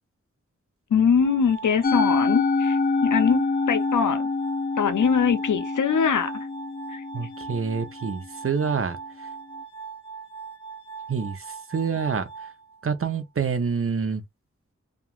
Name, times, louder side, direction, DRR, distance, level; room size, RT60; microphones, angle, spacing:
voice 1, 0.9-4.3 4.8-6.3 6.9-7.0, left 6 dB, 85° left, 0.6 m, -22 dB
Glass, 1.2-13.2, right 5 dB, 15° left, 0.9 m, -41 dB
Musical instrument, 1.8-8.2, left 3 dB, 35° left, 0.4 m, -26 dB
voice 2, 7.1-9.0 11.1-12.3 12.8-14.2, right 6 dB, 50° right, 0.6 m, -27 dB
2.8 x 2.4 x 2.4 m
cardioid pair, 40°, 30 cm